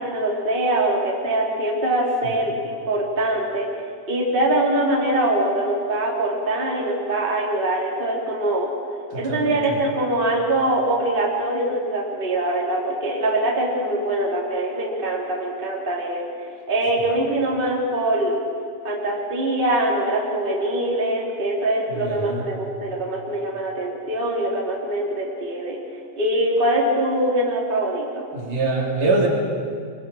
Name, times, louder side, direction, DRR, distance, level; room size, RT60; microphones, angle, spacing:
voice 1, 0.0-3.7 4.1-8.7 9.1-18.4 18.8-25.8 26.2-28.3, right 1 dB, 15° right, -3 dB, 3.2 m, -23 dB
voice 2, 9.1-9.8 21.9-22.5 28.3-29.3, right 3 dB, 60° right, -1 dB, 4.2 m, -24 dB
25.5 x 23.0 x 6.3 m, 2.2 s
omnidirectional pair, 4.4 m